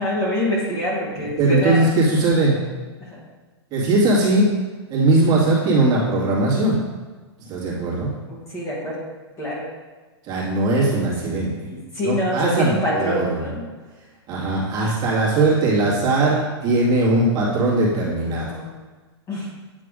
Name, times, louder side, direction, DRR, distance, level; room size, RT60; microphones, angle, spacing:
voice 1, 0.0-1.9 3.0-3.2 8.3-9.1 9.4-9.6 11.7-13.6 18.3-18.7 19.3-19.5, left 1 dB, 20° left, -5 dB, 1.9 m, -25 dB
voice 2, 1.1-2.6 3.7-4.5 4.9-6.8 7.4-8.1 10.2-11.5 12.0-13.5 14.3-18.5, right 2 dB, 30° right, -6 dB, 2.1 m, -19 dB
8.8 x 3.3 x 5.1 m, 1.3 s
hypercardioid pair, 140°, 14 cm